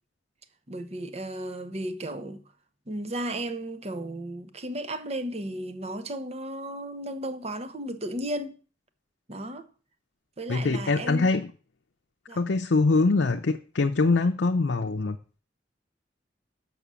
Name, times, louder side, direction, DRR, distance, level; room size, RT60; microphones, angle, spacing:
voice 1, 0.7-2.4 2.9-8.6 9.3-9.7 10.4-11.3 12.3-12.4, right 1 dB, 35° right, 0.9 m, -34 dB
voice 2, 10.5-11.5 12.3-15.2, left 3 dB, 85° left, 0.6 m, -23 dB
6.1 x 6.0 x 6.9 m
head